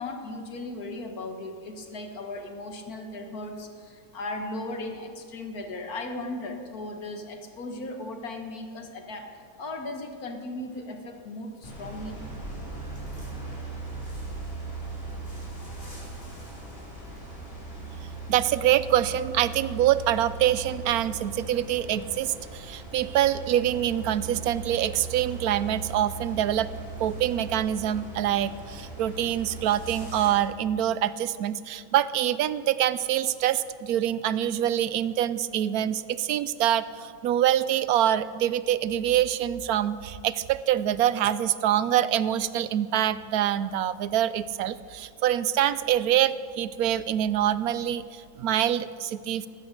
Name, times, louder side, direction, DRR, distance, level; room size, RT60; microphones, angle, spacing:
voice 1, 0.0-12.2 16.2-16.4, left 2 dB, 90° left, 5 dB, 2.0 m, -37 dB
sound 1, 11.6-30.3, right 3 dB, 35° left, 4.8 m, -39 dB
voice 2, 18.3-26.7 27.0-49.5, right 11 dB, 90° right, 15 dB, 1.1 m, -25 dB
15.0 x 13.0 x 6.6 m, 2.1 s
omnidirectional pair, 1.5 m